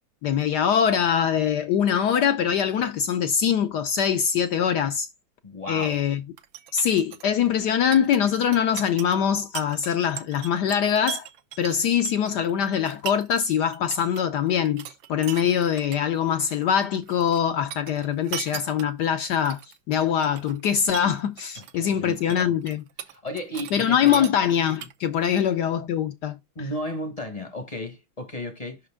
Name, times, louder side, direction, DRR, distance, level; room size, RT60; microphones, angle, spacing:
voice 1, 0.2-5.1 5.7-6.2 6.7-11.3 11.6-19.6 19.9-22.8 23.7-26.4, left 8 dB, 70° left, 1.0 m, -23 dB
voice 2, 5.4-6.0 21.6-22.6 23.1-24.3 26.5-28.8, left 1 dB, 30° left, 0.7 m, -34 dB
sound 1, 6.4-13.5 13.7-14.2 14.5-16.0 16.3-17.4 17.7-19.8 20.2-20.6 20.9-21.8 22.1-23.8 24.0-25.2, right 11 dB, 70° right, 1.3 m, -38 dB
5.8 x 5.1 x 3.5 m
omnidirectional pair, 2.3 m